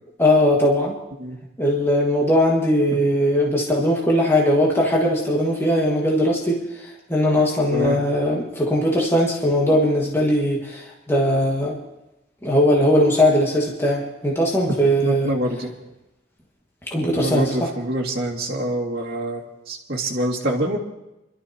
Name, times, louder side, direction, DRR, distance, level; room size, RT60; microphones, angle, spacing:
voice 1, 0.2-0.9 1.6-11.8 12.4-15.3 16.9-17.7, equal, 15° left, -3 dB, 1.5 m, -19 dB
voice 2, 15.0-15.7 17.1-20.8, right 1 dB, 60° right, -5 dB, 2.2 m, -25 dB
27.0 x 12.5 x 2.8 m, 0.94 s
head